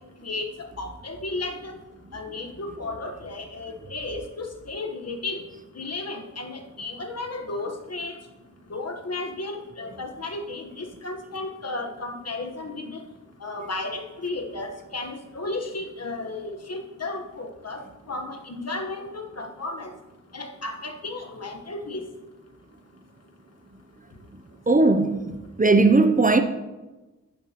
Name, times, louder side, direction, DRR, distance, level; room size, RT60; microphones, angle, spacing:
voice 1, 0.2-1.7 2.1-5.4 5.8-8.1 8.7-13.0 13.4-17.8 18.1-19.9 20.3-22.1, left 2 dB, 55° left, 4 dB, 1.2 m, -34 dB
voice 2, 24.7-26.4, right 3 dB, 25° right, 8 dB, 0.5 m, -18 dB
10.5 x 10.5 x 2.9 m, 1.1 s
wide cardioid pair, 90°, 30 cm